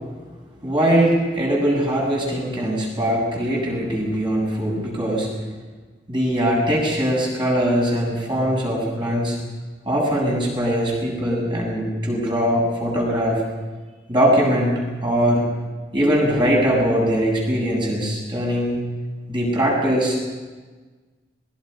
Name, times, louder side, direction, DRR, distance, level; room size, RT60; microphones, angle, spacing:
voice 1, 0.6-5.3 6.1-9.4 9.8-13.4 14.1-15.5 15.9-18.8 19.3-20.3, equal, 25° right, -3 dB, 8.0 m, -21 dB
26.0 x 21.0 x 5.6 m, 1.3 s
head